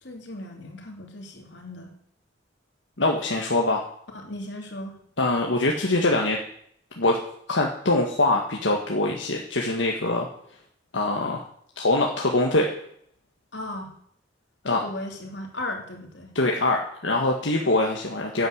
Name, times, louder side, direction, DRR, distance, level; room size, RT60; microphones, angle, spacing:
voice 1, 0.0-1.9 4.1-4.9 13.5-13.9 14.7-16.3, left 1 dB, 75° left, 2 dB, 3.0 m, -36 dB
voice 2, 3.0-3.8 5.2-6.4 7.0-7.2 7.5-10.3 10.9-11.4 11.8-12.7 14.6-14.8 16.4-18.5, left 2 dB, 90° left, 0 dB, 1.8 m, -23 dB
11.0 x 9.4 x 8.1 m, 0.66 s
head